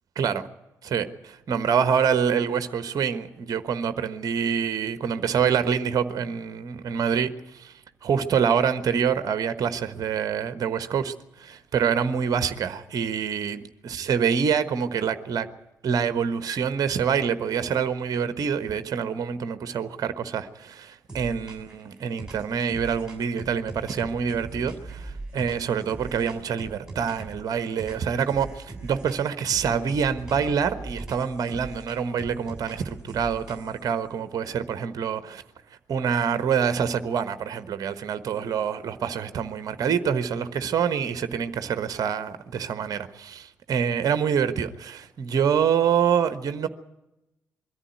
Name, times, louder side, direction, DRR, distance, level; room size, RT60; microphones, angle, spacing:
voice 1, 0.8-7.7 8.0-15.5 15.8-35.4 35.9-46.7, right 7 dB, 45° right, 1.2 m, -26 dB
sound 1, 21.1-21.8 22.2-27.4 27.8-29.2 29.5-33.9, right 2 dB, 10° right, 6.0 m, -40 dB
22.0 x 14.0 x 9.5 m
figure-of-eight pair, 45°, 9 cm